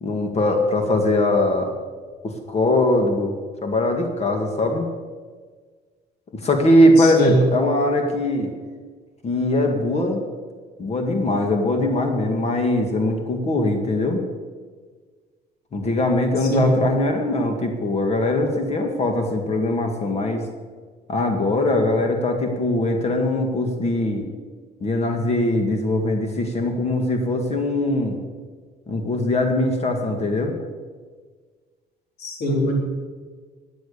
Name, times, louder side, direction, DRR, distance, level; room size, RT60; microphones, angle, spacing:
voice 1, 0.0-1.7 2.5-3.3 3.6-4.9 6.4-8.5 9.2-10.2 10.8-14.2 15.7-20.4 21.1-24.3 24.8-28.2 28.9-30.5, left 1 dB, 40° left, 4 dB, 2.1 m, -21 dB
voice 2, 7.0-7.5 16.4-16.8 32.2-32.7, equal, 70° left, 0 dB, 3.9 m, -22 dB
15.5 x 9.3 x 6.9 m, 1.5 s
cardioid pair, 110°, 17 cm